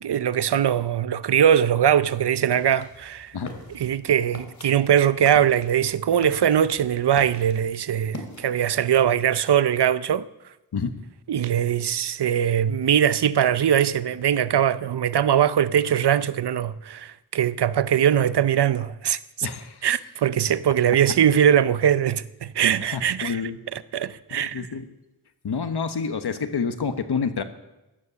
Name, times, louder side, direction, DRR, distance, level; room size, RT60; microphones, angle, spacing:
voice 1, 0.0-3.3 3.7-10.2 11.3-19.2 19.8-23.4 23.7-24.7, right 9 dB, 80° right, 0.7 m, -21 dB
sound 1, 2.0-9.0, left 2 dB, 45° left, 2.9 m, -43 dB
voice 2, 19.4-19.9 22.8-23.6 24.3-24.8 25.4-27.4, left 5 dB, 75° left, 1.3 m, -28 dB
16.0 x 11.0 x 7.0 m
wide cardioid pair, 75°, 40 cm